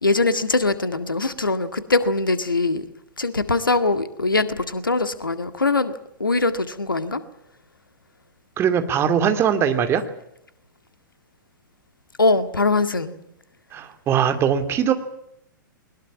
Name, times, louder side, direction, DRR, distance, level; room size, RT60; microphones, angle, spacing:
voice 1, 0.0-2.8 3.2-7.2 12.2-13.1, left 3 dB, 80° left, 11 dB, 1.9 m, -22 dB
voice 2, 8.6-10.0 13.7-14.9, right 8 dB, 25° right, 8 dB, 2.6 m, -20 dB
22.0 x 20.5 x 8.4 m, 0.77 s
figure-of-eight pair, 105°, 11 cm